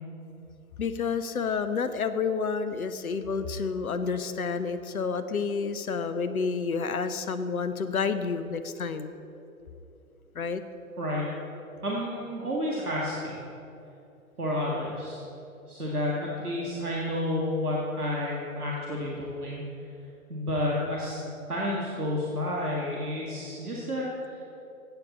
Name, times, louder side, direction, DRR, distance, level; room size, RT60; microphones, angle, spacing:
voice 1, 0.8-9.1 10.3-10.6, left 5 dB, 75° left, 12 dB, 0.8 m, -29 dB
voice 2, 11.0-11.3 11.8-13.4 14.4-15.2 15.7-19.6 20.3-21.2 21.5-24.1, left 1 dB, 85° right, -4 dB, 1.9 m, -30 dB
16.0 x 8.2 x 4.2 m, 2.8 s
figure-of-eight pair, 120°, 44 cm